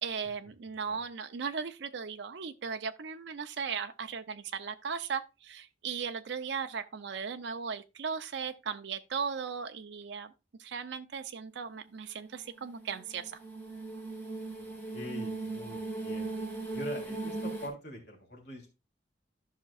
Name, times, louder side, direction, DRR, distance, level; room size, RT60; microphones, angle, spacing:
voice 1, 0.0-10.3 10.6-13.4, right 6 dB, 70° right, 0.5 m, -37 dB
sound 1, 12.2-17.7, right 3 dB, 15° left, 2.1 m, -38 dB
voice 2, 14.9-16.3 16.7-18.7, left 1 dB, 60° left, 3.1 m, -43 dB
13.0 x 5.8 x 2.4 m
head